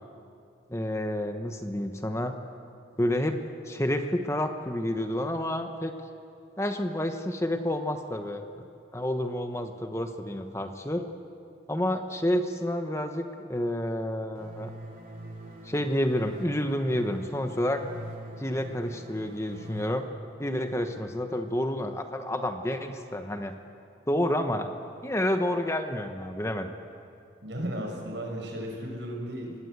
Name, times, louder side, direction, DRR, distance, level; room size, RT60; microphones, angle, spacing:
voice 1, 0.7-2.3 3.0-3.4 3.7-5.9 6.6-8.7 8.9-11.1 11.7-14.7 15.6-17.8 18.4-20.1 20.4-23.5 24.1-24.7 25.0-26.7, left 1 dB, 15° left, 6 dB, 1.1 m, -29 dB
sound 1, 14.4-19.9, right 1 dB, 45° right, 4.0 m, -43 dB
voice 2, 27.4-29.6, equal, 75° right, 1 dB, 6.1 m, -35 dB
26.5 x 20.0 x 8.1 m, 2.4 s
head